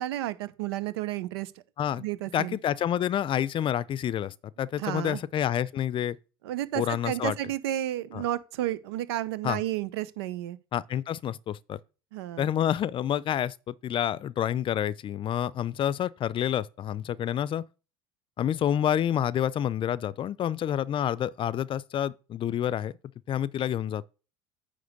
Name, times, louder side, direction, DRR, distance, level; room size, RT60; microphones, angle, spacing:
voice 1, 0.0-1.5 1.9-2.6 4.8-5.2 6.4-10.6 12.1-12.5, right 13 dB, 80° right, 0.8 m, -32 dB
voice 2, 2.3-6.2 6.7-7.3 8.1-8.2 9.4-9.6 10.7-11.8 12.4-17.6 18.4-22.9 23.3-24.1, left 10 dB, 40° left, 0.5 m, -28 dB
9.4 x 3.2 x 6.6 m
hypercardioid pair, 80°, 13 cm